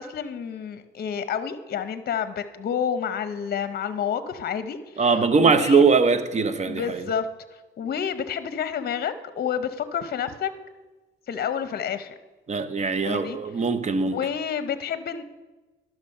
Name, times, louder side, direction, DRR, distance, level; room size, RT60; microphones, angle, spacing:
voice 1, 0.0-5.8 6.6-7.3 7.5-10.5 11.3-12.1 13.0-13.4 14.0-15.2, left 8 dB, 50° left, 0.7 m, -29 dB
voice 2, 5.0-7.0 12.5-14.2, right 4 dB, 35° right, 0.7 m, -21 dB
11.5 x 6.0 x 5.3 m
cardioid pair, 90°, 20 cm